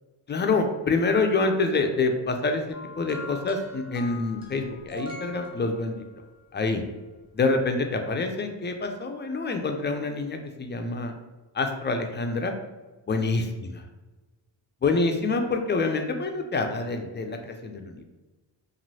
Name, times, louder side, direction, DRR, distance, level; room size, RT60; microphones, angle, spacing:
voice 1, 0.3-2.7 3.0-5.9 6.5-6.8 7.3-11.1 11.5-12.5 13.1-13.7 14.8-18.0, left 3 dB, 25° left, 5 dB, 0.3 m, -26 dB
sound 1, 2.7-6.2 7.3-7.5, left 1 dB, 10° right, 1.0 m, -42 dB
3.0 x 2.5 x 2.7 m, 1.2 s
supercardioid pair, 60°, 49 cm